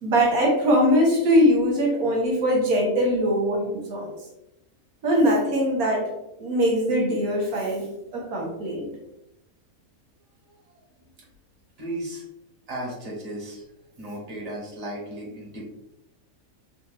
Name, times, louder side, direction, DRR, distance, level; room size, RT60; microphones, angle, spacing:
voice 1, 0.0-4.1 5.0-6.1 6.4-8.9, equal, 90° right, -2 dB, 1.5 m, -22 dB
voice 2, 11.8-12.2 12.7-13.7 14.0-15.6, right 1 dB, 30° right, -5 dB, 1.3 m, -35 dB
4.2 x 2.8 x 2.6 m, 0.87 s
omnidirectional pair, 1.5 m